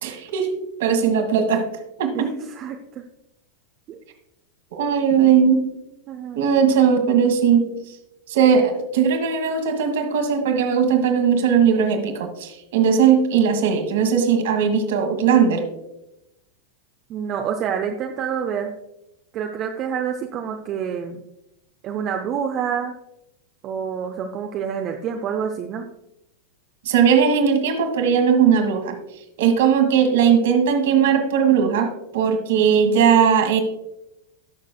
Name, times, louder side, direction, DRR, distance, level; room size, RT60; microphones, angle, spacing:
voice 1, 0.0-0.5 0.8-1.6 2.0-2.3 4.7-5.6 6.4-7.7 8.3-15.7 26.8-29.0 29.4-33.6, right 7 dB, 55° right, 5 dB, 1.5 m, -18 dB
voice 2, 2.1-3.0 3.9-4.0 6.1-6.4 17.1-18.7 19.3-21.2 21.8-22.9 23.6-25.8, right 7 dB, 35° right, 4 dB, 0.7 m, -27 dB
18.0 x 6.4 x 2.2 m, 0.88 s
figure-of-eight pair, 90°, 0 cm